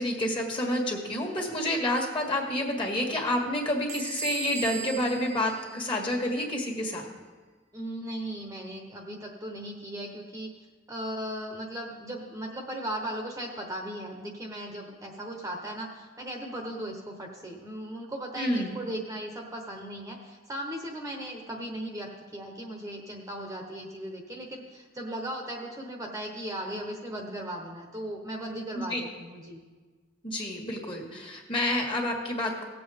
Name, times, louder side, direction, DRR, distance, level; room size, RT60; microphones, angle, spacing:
voice 1, 0.0-7.0 18.3-18.7 28.7-29.0 30.2-32.6, left 1 dB, 25° left, 0 dB, 1.8 m, -29 dB
Bell / Door, 3.9-6.4, right 6 dB, 40° right, 0.9 m, -38 dB
voice 2, 7.7-10.5 10.9-29.6, right 1 dB, 15° right, 1 dB, 1.0 m, -37 dB
17.5 x 7.7 x 3.5 m, 1.4 s
head